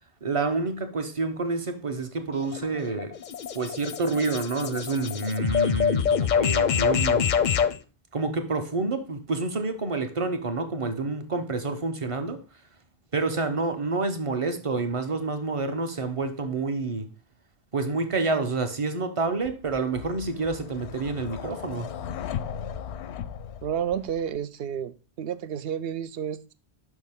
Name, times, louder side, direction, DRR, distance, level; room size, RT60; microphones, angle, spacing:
voice 1, 0.2-3.2 3.5-7.3 8.1-12.5 13.1-17.1 17.7-22.0, right 3 dB, 35° right, 0.8 m, -28 dB
sound 1, 2.3-7.8, left 7 dB, 55° left, 0.6 m, -25 dB
sound 2, 19.4-24.4, left 9 dB, 85° left, 0.8 m, -37 dB
voice 2, 23.6-26.5, right 9 dB, 70° right, 0.8 m, -31 dB
6.3 x 5.8 x 3.6 m
omnidirectional pair, 1.1 m